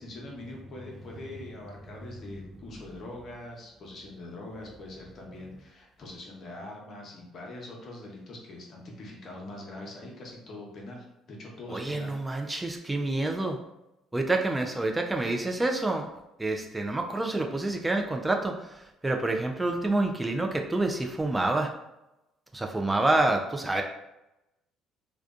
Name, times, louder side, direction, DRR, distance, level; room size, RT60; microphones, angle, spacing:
voice 1, 0.0-12.2 13.1-13.3, left 2 dB, 55° left, -1 dB, 0.8 m, -43 dB
voice 2, 11.7-13.6 14.1-16.1 16.4-21.7 22.5-23.8, right 2 dB, 15° right, 3 dB, 0.3 m, -28 dB
2.5 x 2.2 x 2.4 m, 0.90 s
supercardioid pair, 70°, 0 cm